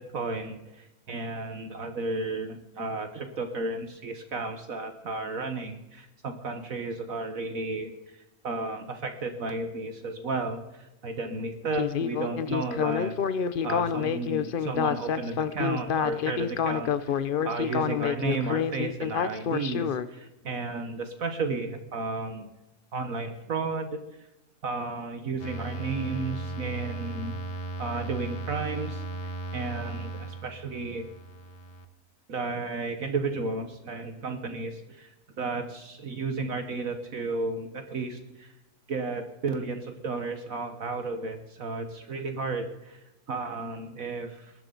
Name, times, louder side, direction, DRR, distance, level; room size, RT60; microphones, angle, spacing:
voice 1, 0.0-13.1 13.6-22.5 22.9-24.2 24.6-27.3 27.8-31.1 32.3-35.1 35.4-38.5 38.9-44.5, right 3 dB, 55° right, 7 dB, 1.5 m, -33 dB
Speech synthesizer, 11.7-20.1, left 8 dB, 65° left, 0.5 m, -28 dB
sound 1, 25.4-31.9, right 2 dB, 40° left, 1.2 m, -36 dB
20.0 x 12.0 x 3.9 m, 0.93 s
omnidirectional pair, 1.8 m